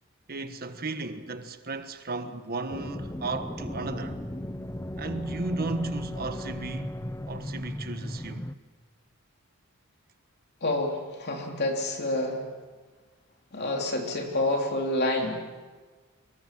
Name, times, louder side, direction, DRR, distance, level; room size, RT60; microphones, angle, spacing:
voice 1, 0.3-4.2 5.0-6.9 7.3-8.5, right 3 dB, 45° right, 1.4 m, -34 dB
sound 1, 2.7-8.5, left 1 dB, 15° left, 0.7 m, -36 dB
voice 2, 10.6-12.4 13.5-15.6, left 1 dB, 50° left, 3.4 m, -28 dB
25.0 x 21.5 x 7.6 m
head